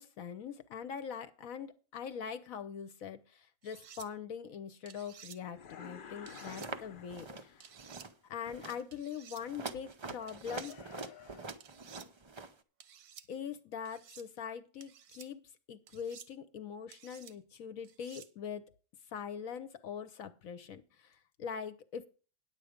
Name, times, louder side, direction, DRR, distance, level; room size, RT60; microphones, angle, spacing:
voice 1, 0.0-7.7 8.2-11.4 13.3-15.4 15.7-18.6 19.1-22.1, left 7 dB, 65° left, 11 dB, 1.1 m, -43 dB
sound 1, 3.6-4.1 4.9-5.4 6.3-6.7 7.6-8.1 8.9-9.4 10.3-10.8 11.6-12.1 12.8-13.3 13.9-14.3 14.8-15.3 15.9-16.3 16.9-17.3 17.8-18.3, right 8 dB, 80° right, 1.4 m, -54 dB
sound 2, 5.5-7.9, left 7 dB, 50° left, 0.7 m, -51 dB
sound 3, 6.4-6.8 7.1-7.5 7.7-8.1 8.4-8.8 9.4-12.5, right 3 dB, 45° right, 0.3 m, -44 dB
9.7 x 8.3 x 5.0 m, 0.37 s
omnidirectional pair, 1.6 m